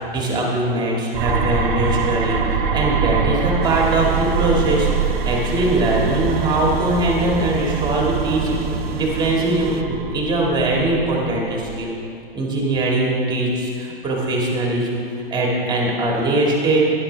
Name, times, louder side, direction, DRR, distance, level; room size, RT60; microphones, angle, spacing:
voice 1, 0.0-2.4 2.7-4.9 5.2-11.9 12.3-15.0 15.3-16.8, right 2 dB, 15° right, -2 dB, 2.0 m, -21 dB
long Beastly growl effect, 1.1-11.9, right 6 dB, 35° right, 1.5 m, -24 dB
sound 1, 3.6-9.8, right 7 dB, 80° right, 0.8 m, -33 dB
13.0 x 11.0 x 3.3 m, 2.5 s
hypercardioid pair, 125°, 30 cm